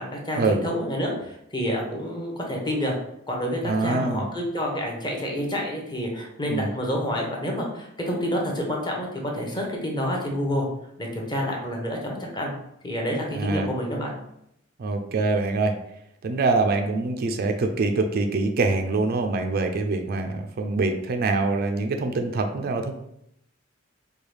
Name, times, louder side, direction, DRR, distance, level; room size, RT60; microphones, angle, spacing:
voice 1, 0.0-3.0 3.3-10.7 11.0-12.5 12.8-14.1, equal, 20° left, -1 dB, 0.8 m, -28 dB
voice 2, 3.6-4.2 6.5-6.7 13.3-13.7 14.8-15.8 16.2-22.9, right 3 dB, 50° right, 5 dB, 0.4 m, -24 dB
4.6 x 2.3 x 3.2 m, 0.77 s
head